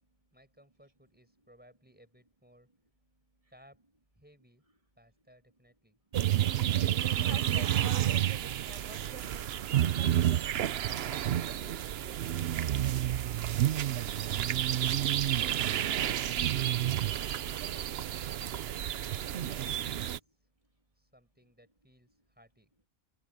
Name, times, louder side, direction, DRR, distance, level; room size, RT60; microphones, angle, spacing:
voice 1, 0.3-2.7 3.5-3.8 4.2-4.6 5.0-6.0 11.5-13.0 19.2-20.4 21.0-22.7, equal, 10° right, 6.0 m, -61 dB
sound 1, 6.1-20.2, right 11 dB, 70° right, 0.9 m, -30 dB
voice 2, 7.0-10.4, right 1 dB, 30° right, 3.4 m, -48 dB
omnidirectional pair, 1.1 m